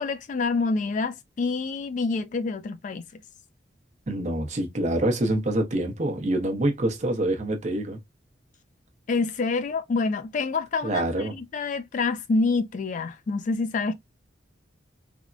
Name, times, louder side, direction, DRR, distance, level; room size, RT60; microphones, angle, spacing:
voice 1, 0.0-3.2 9.1-13.9, left 4 dB, 40° left, 0.3 m, -27 dB
voice 2, 4.1-8.0 10.8-11.4, right 1 dB, 40° right, 0.7 m, -26 dB
3.4 x 2.0 x 2.4 m
head